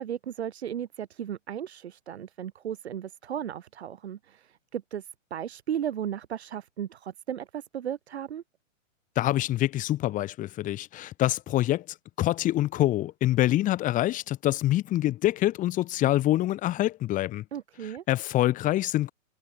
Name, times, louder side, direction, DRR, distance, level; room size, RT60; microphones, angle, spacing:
voice 1, 0.0-8.4 17.5-18.0, right 9 dB, 55° right, 4.2 m, -35 dB
voice 2, 9.2-11.9 12.2-17.4 18.1-19.1, left 14 dB, 20° left, 2.0 m, -25 dB
figure-of-eight pair, 115°, 39 cm